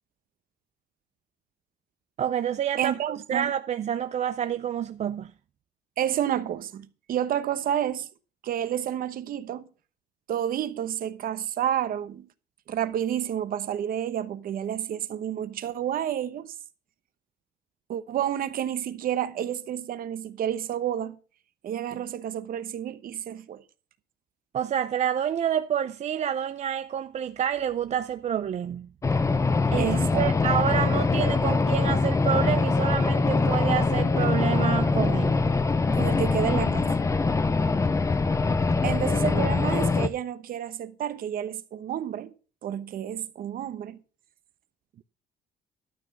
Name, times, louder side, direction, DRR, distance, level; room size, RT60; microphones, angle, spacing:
voice 1, 2.2-2.9 3.3-5.3 24.5-28.9 29.7-35.4, right 9 dB, 40° right, 0.5 m, -28 dB
voice 2, 2.8-3.5 6.0-8.1 8.4-9.7 10.3-12.3 12.7-16.6 17.9-21.2 21.6-23.6 29.8-30.3 35.9-36.9 38.8-42.3 42.6-44.0, right 10 dB, 60° right, 1.1 m, -30 dB
sound 1, 29.0-40.1, left 3 dB, 20° left, 0.8 m, -23 dB
12.5 x 6.1 x 6.0 m
cardioid pair, 110°, 17 cm